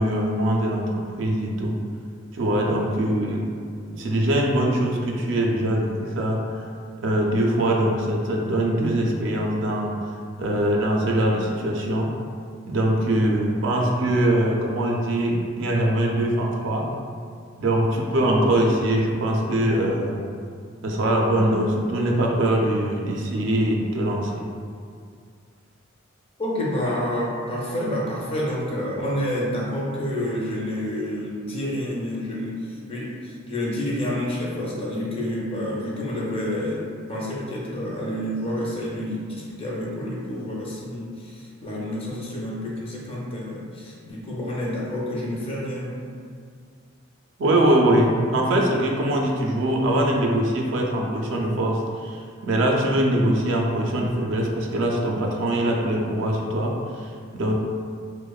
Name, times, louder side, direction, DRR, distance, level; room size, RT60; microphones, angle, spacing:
voice 1, 0.0-1.8 2.3-3.4 3.9-6.4 7.0-9.9 10.4-12.1 12.7-16.9 17.6-20.2 20.8-24.4 47.4-57.5, right 1 dB, 65° right, -1 dB, 0.3 m, -22 dB
voice 2, 26.4-46.0, left 1 dB, 30° left, -4 dB, 0.4 m, -29 dB
2.9 x 2.0 x 2.3 m, 2.2 s
head